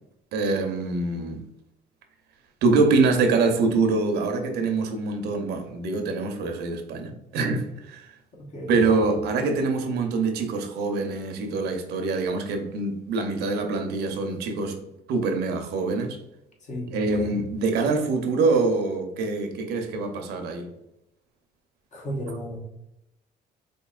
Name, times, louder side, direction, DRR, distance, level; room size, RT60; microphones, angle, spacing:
voice 1, 0.3-1.4 2.6-8.0 8.7-14.8 15.1-16.2 16.9-20.7, right 3 dB, 75° right, 0.7 m, -24 dB
voice 2, 8.3-8.8 16.6-17.0 21.9-22.6, equal, 45° left, 1.0 m, -34 dB
4.4 x 2.7 x 2.3 m
cardioid pair, 110°, 17 cm